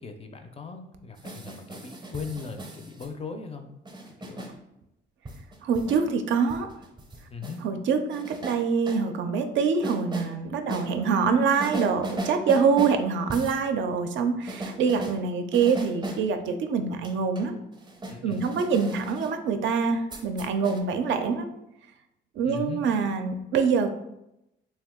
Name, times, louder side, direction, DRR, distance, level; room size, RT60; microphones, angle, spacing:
voice 1, 0.0-3.7 4.2-4.5 7.3-7.6 18.1-18.4 22.4-22.8, left 5 dB, 30° left, 5 dB, 0.4 m, -38 dB
sound 1, 1.2-3.1 3.9-4.5 5.3-6.0 6.5-7.6 8.1-9.0 9.8-10.3 10.7-10.9 11.6-13.0 13.3-13.6 14.5-15.2 15.5-16.2 16.8-19.3 20.1-20.8, right 1 dB, 20° right, 0.5 m, -37 dB
voice 2, 5.6-6.7 7.6-17.6 18.2-21.5 22.4-23.9, right 5 dB, 70° right, 7 dB, 0.4 m, -25 dB
2.7 x 2.2 x 3.5 m, 0.86 s
cardioid pair, 90°, 20 cm